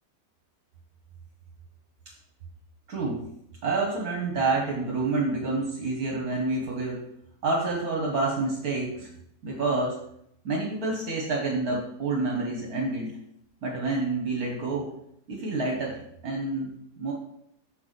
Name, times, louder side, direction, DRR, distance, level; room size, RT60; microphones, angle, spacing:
voice 1, 2.9-3.2 3.6-7.0 7.4-9.1 9.4-10.0 10.4-13.1 13.6-14.9 15.3-17.1, right 3 dB, 60° right, -2 dB, 1.5 m, -28 dB
6.4 x 4.7 x 4.0 m, 0.74 s
omnidirectional pair, 1.8 m